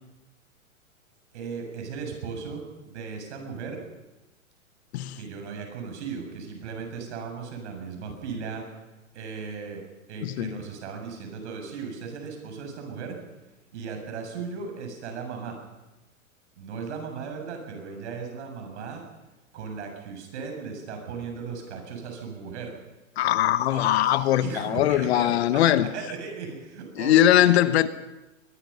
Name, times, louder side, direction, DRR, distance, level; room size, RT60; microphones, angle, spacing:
voice 1, 1.3-3.8 5.2-8.6 9.1-9.8 10.1-13.2 13.7-15.6 16.6-19.0 19.5-22.7 23.7-27.7, right 5 dB, 55° right, 7.6 m, -37 dB
voice 2, 10.2-10.6 23.2-25.9 27.0-27.9, left 12 dB, 50° left, 1.2 m, -21 dB
22.5 x 21.5 x 5.6 m
hypercardioid pair, 115°, 41 cm